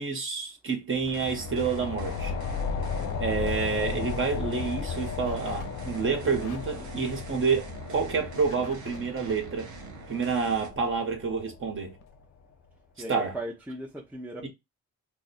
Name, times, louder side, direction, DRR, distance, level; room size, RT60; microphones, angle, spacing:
voice 1, 0.0-2.4 3.2-9.7 10.1-12.0 13.1-13.3 14.4-14.5, right 5 dB, 40° right, 1.2 m, -28 dB
sound 1, 0.9-12.1, left 6 dB, 55° left, 0.4 m, -35 dB
sound 2, 1.0-10.7, right 5 dB, 75° right, 0.8 m, -44 dB
sound 3, 3.7-3.8 4.2-4.3 4.6-4.7 5.3-5.6 5.9-6.6 8.4-9.4 10.7-10.8 11.4-11.5 11.7-11.8 12.0-12.1, left 4 dB, 85° left, 0.8 m, -48 dB
voice 2, 13.0-14.5, right 1 dB, 5° right, 0.8 m, -37 dB
2.5 x 2.2 x 4.0 m
cardioid pair, 90°, 30 cm